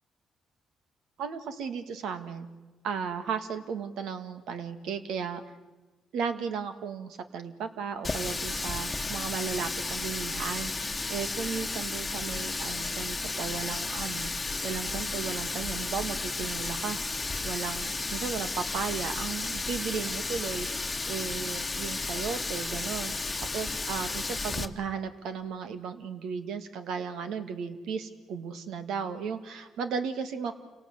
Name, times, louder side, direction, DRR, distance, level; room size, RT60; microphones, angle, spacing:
voice 1, 1.2-2.5 2.8-5.4 6.1-14.3 14.6-17.0 17.4-23.3 23.5-30.5, right 6 dB, 80° right, 9 dB, 1.9 m, -35 dB
Water tap faucet, 8.0-24.7, left 3 dB, 20° left, 1.4 m, -33 dB
28.5 x 18.5 x 8.1 m, 1.2 s
cardioid pair, 90°, 0 cm